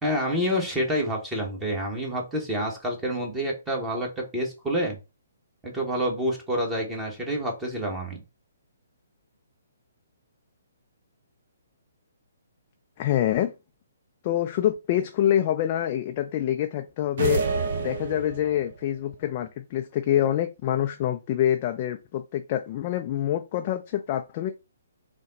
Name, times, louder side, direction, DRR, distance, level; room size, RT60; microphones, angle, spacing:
voice 1, 0.0-5.0 5.6-8.2, equal, 10° right, 1.2 m, -28 dB
voice 2, 13.0-13.5 14.2-17.4 17.8-24.5, left 11 dB, 35° left, 0.4 m, -26 dB
sound 1, 17.2-18.7, right 5 dB, 50° right, 0.8 m, -28 dB
5.5 x 2.2 x 3.9 m
figure-of-eight pair, 130°, 0 cm